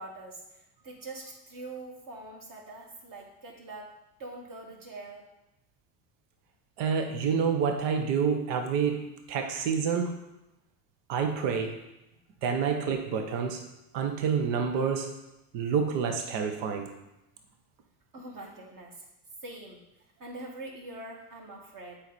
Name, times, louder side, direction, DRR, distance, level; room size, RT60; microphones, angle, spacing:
voice 1, 0.0-3.9 4.2-5.2 18.1-18.9 19.4-19.8 20.2-22.0, right 2 dB, 40° right, -1 dB, 2.4 m, -43 dB
voice 2, 6.8-10.2 11.1-11.8 12.4-13.6 13.9-15.1 15.5-16.9, right 6 dB, 65° right, 5 dB, 1.2 m, -28 dB
7.9 x 5.0 x 4.3 m, 0.92 s
hypercardioid pair, 75°, 49 cm